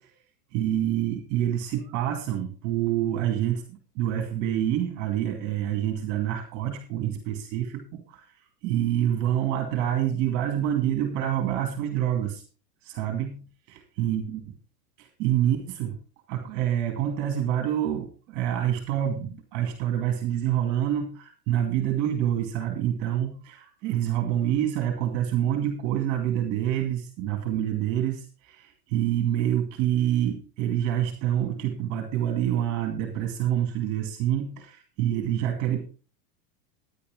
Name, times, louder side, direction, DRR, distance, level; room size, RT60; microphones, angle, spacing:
voice 1, 0.5-8.2 8.6-12.4 12.8-14.4 15.0-16.0 16.3-35.9, right 11 dB, 35° right, 5 dB, 2.3 m, -27 dB
11.5 x 10.5 x 3.7 m, 0.35 s
supercardioid pair, 150°, 49 cm